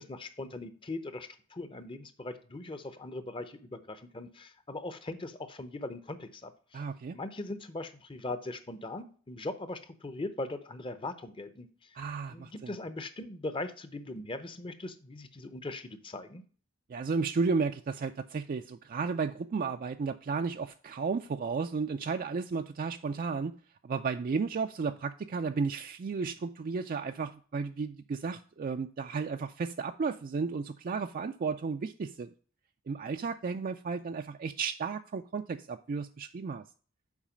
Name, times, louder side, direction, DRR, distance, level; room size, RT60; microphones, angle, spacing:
voice 1, 0.0-6.8 7.1-11.7 12.3-16.4, left 2 dB, 25° left, 0.7 m, -40 dB
voice 2, 6.7-7.2 12.0-12.7 16.9-23.5 23.8-32.3 32.9-36.6, right 5 dB, 40° right, 0.3 m, -33 dB
7.3 x 4.7 x 5.0 m
head